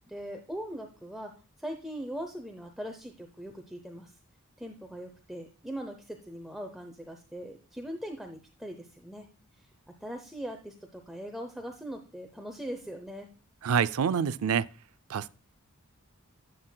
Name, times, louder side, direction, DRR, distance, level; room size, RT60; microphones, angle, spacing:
voice 1, 0.1-4.1 4.6-9.3 9.6-9.7 10.0-13.3, equal, ahead, 0.7 m, -40 dB
voice 2, 13.6-14.7 15.1-15.3, right 7 dB, 70° right, 0.4 m, -26 dB
11.0 x 7.7 x 2.2 m
head